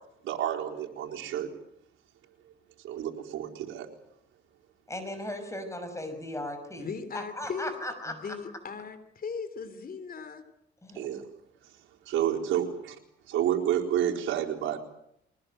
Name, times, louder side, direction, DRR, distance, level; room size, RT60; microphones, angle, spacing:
voice 1, 0.2-1.5 2.8-3.9 11.0-11.2 12.1-12.9 13.3-14.8, right 10 dB, 85° right, 0 dB, 4.1 m, -29 dB
voice 2, 4.9-6.9 7.1-8.2 10.8-11.2, left 1 dB, 15° left, 7 dB, 6.0 m, -37 dB
voice 3, 6.8-7.7 8.1-10.4, left 5 dB, 45° left, 12 dB, 3.4 m, -38 dB
23.5 x 19.5 x 9.1 m, 0.75 s
cardioid pair, 90°, 20 cm